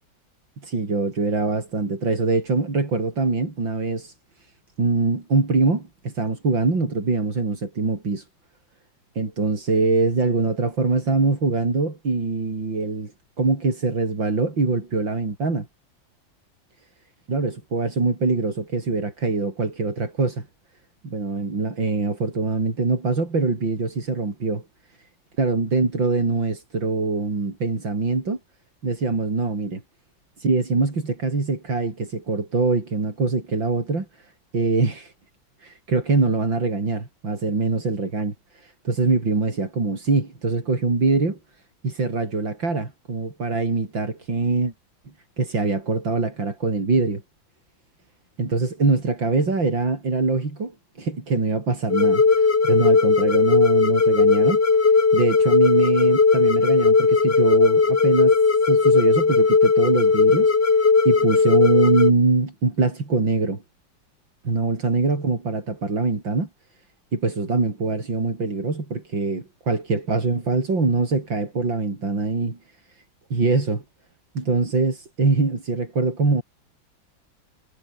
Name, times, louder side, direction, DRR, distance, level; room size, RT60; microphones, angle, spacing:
voice 1, 0.6-4.1 4.8-8.3 9.2-13.1 13.4-15.7 17.3-20.5 21.0-24.6 25.4-28.4 28.8-29.8 30.4-35.1 35.6-41.4 41.8-44.7 45.4-47.2 48.4-54.6 54.9-58.4 58.7-60.5 61.1-63.6 64.4-66.5 67.1-72.6 73.3-73.8 74.4-76.4, right 3 dB, 80° right, 5.5 m, -23 dB
sound 1, 51.9-62.1, left 4 dB, 35° left, 2.0 m, -17 dB
omnidirectional pair, 2.0 m